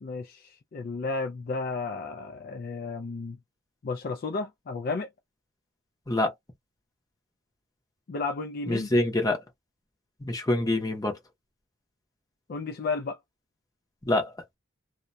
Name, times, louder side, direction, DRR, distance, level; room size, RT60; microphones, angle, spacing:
voice 1, 0.0-3.4 3.8-5.1 8.1-8.9 12.5-13.2, left 4 dB, 45° left, 0.4 m, -33 dB
voice 2, 8.7-9.4 10.2-11.2 14.0-14.3, left 1 dB, 20° left, 0.7 m, -25 dB
2.3 x 2.1 x 2.6 m
head